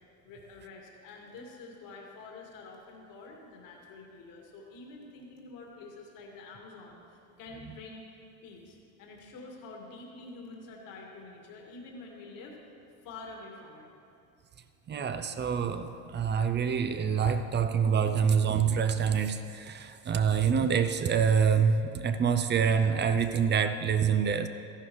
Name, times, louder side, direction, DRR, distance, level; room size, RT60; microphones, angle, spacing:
voice 1, 0.2-8.0 8.4-12.6 13.0-13.9, left 3 dB, 55° left, 0 dB, 2.2 m, -47 dB
voice 2, 14.9-24.5, right 7 dB, 30° right, 9 dB, 0.6 m, -26 dB
14.0 x 11.5 x 3.2 m, 2.5 s
hypercardioid pair, 85°, 39 cm